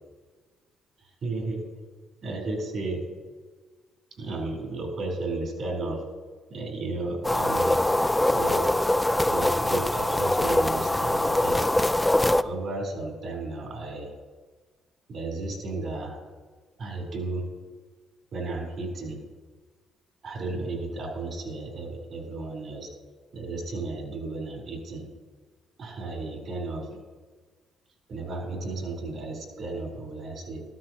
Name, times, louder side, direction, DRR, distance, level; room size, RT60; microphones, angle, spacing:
voice 1, 1.0-1.6 2.2-3.0 4.2-6.0 6.5-7.8 8.3-8.7 9.2-11.7 12.4-14.1 15.1-16.2 16.8-17.5 18.3-19.2 20.2-22.9 23.3-25.1 25.8-27.0 28.1-30.6, right 2 dB, 60° right, 1 dB, 4.2 m, -33 dB
sound 1, 7.2-12.4, left 1 dB, 10° left, 0.4 m, -23 dB
13.5 x 13.5 x 3.0 m, 1.4 s
cardioid pair, 90°, 0 cm